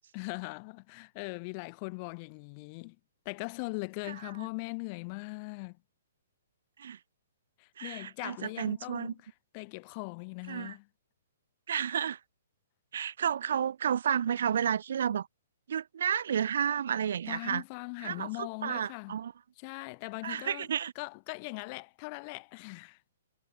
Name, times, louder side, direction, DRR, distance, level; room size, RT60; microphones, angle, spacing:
voice 1, 0.1-3.0 3.2-5.8 7.6-10.9 17.3-19.2 19.6-20.7 20.9-23.0, left 32 dB, 35° left, 1.3 m, -40 dB
voice 2, 7.8-9.1 10.5-10.7 11.7-12.2 12.9-15.3 15.7-17.6 18.0-19.3 20.2-20.9, right 8 dB, 60° right, 1.0 m, -31 dB
figure-of-eight pair, 120°, 0 cm